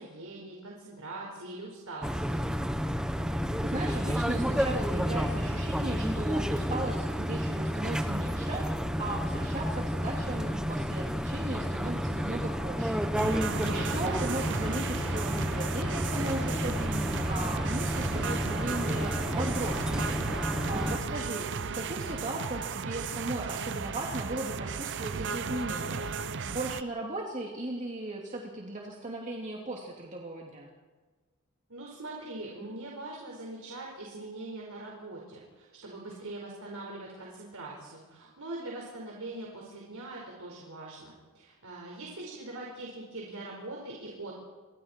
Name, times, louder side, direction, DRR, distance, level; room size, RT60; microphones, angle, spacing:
voice 1, 0.0-2.5 13.5-14.0 31.7-44.3, right 2 dB, 80° right, -2 dB, 5.0 m, -42 dB
sound 1, 2.0-21.0, equal, 5° right, 1.3 m, -31 dB
voice 2, 3.6-13.1 13.6-20.2 20.7-26.0 26.4-30.7, right 2 dB, 35° right, -1 dB, 2.7 m, -37 dB
sound 2, 13.2-26.8, right 5 dB, 55° right, 0.7 m, -35 dB
29.5 x 24.5 x 4.5 m, 1.3 s
head